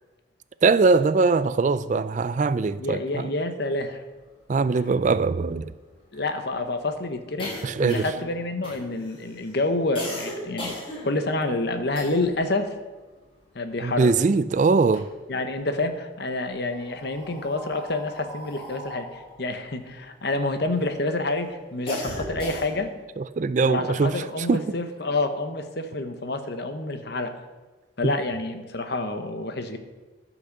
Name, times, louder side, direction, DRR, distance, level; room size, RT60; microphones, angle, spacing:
voice 1, 0.6-3.3 4.5-5.7 7.6-8.1 13.8-15.1 23.2-24.6 28.0-28.1, right 4 dB, 40° right, 0.3 m, -22 dB
voice 2, 2.7-4.0 6.1-10.8 11.0-12.7 13.5-14.1 15.3-22.9 23.6-27.3 28.0-29.8, left 2 dB, 55° left, 1.0 m, -28 dB
sound 1, 4.3-4.4 4.6-4.7 5.0-12.5 12.8-14.3 14.7-15.6 16.4-20.8 21.3-23.0, left 1 dB, 25° left, 3.8 m, -38 dB
12.0 x 6.0 x 6.6 m
head